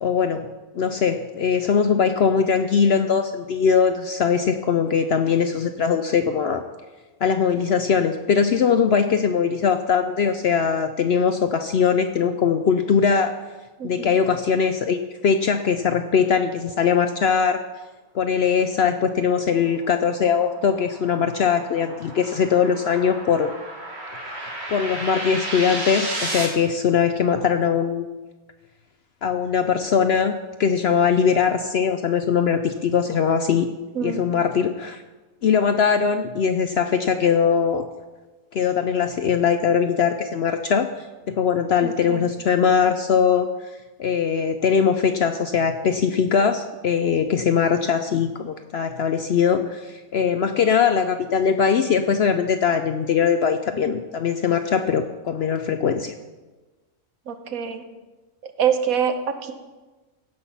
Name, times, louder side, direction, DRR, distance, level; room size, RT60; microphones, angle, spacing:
voice 1, 0.0-0.5 0.8-6.6 7.2-13.3 13.8-17.7 18.1-23.5 24.3-28.1 29.2-30.3 30.6-33.7 34.0-35.0 35.4-37.8 38.5-40.9 41.3-43.5 44.0-56.1, left 6 dB, 65° left, 8 dB, 0.6 m, -21 dB
voice 2, 13.8-14.2 33.9-34.3 41.8-42.3 57.3-57.8 58.4-59.5, right 7 dB, 75° right, 8 dB, 1.3 m, -25 dB
sound 1, 19.6-26.4, right 1 dB, 45° right, 2.1 m, -33 dB
16.5 x 6.0 x 5.6 m, 1.2 s
omnidirectional pair, 1.5 m